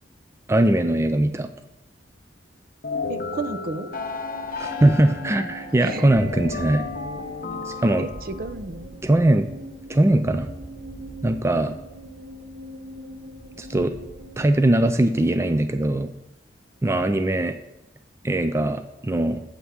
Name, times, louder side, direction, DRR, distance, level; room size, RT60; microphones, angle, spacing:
voice 1, 0.5-1.5 4.6-6.9 7.6-8.1 9.0-9.5 9.9-10.5 11.2-11.8 13.6-13.9 14.4-16.1 16.8-17.6 18.2-19.4, right 1 dB, 15° right, 8 dB, 0.3 m, -21 dB
sound 1, 2.8-8.5, left 4 dB, 50° left, 0.8 m, -33 dB
voice 2, 3.1-3.9 5.8-6.1 6.7-6.8 8.0-8.9, right 3 dB, 50° right, 10 dB, 0.6 m, -32 dB
sound 2, 3.9-14.7, right 1 dB, 75° right, 2.0 m, -41 dB
8.2 x 5.7 x 6.3 m, 0.90 s
head